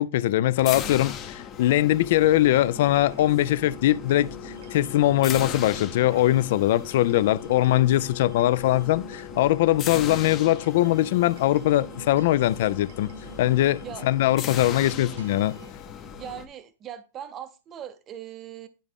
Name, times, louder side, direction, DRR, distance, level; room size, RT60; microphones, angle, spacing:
voice 1, 0.0-13.1 13.4-15.6, left 14 dB, 55° left, 0.4 m, -22 dB
sound 1, 0.5-16.4, left 9 dB, 25° left, 0.7 m, -38 dB
sound 2, 2.5-15.7, right 6 dB, 70° right, 1.1 m, -46 dB
voice 2, 16.0-18.7, right 10 dB, 20° right, 0.6 m, -40 dB
10.0 x 3.7 x 3.6 m
hypercardioid pair, 155°, 0 cm